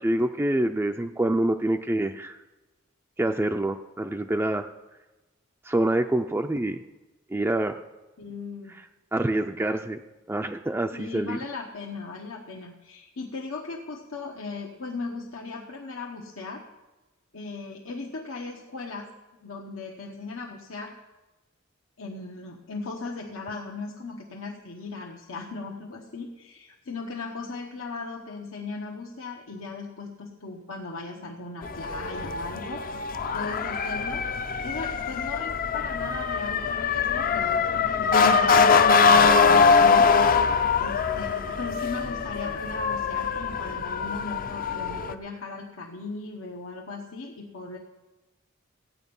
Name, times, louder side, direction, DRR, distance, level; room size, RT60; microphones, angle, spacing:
voice 1, 0.0-2.4 3.2-4.7 5.6-6.8 7.3-7.8 9.1-10.0 10.3-11.4, right 1 dB, 10° right, 4 dB, 0.4 m, -26 dB
voice 2, 8.2-8.8 10.9-16.6 17.3-19.1 19.4-20.9 22.0-32.8 33.3-34.3 34.6-40.1 40.8-47.8, left 3 dB, 80° left, 0 dB, 1.2 m, -37 dB
Motor vehicle (road) / Siren, 31.6-45.1, left 5 dB, 45° left, 0.6 m, -23 dB
15.5 x 8.8 x 5.4 m, 1.1 s
head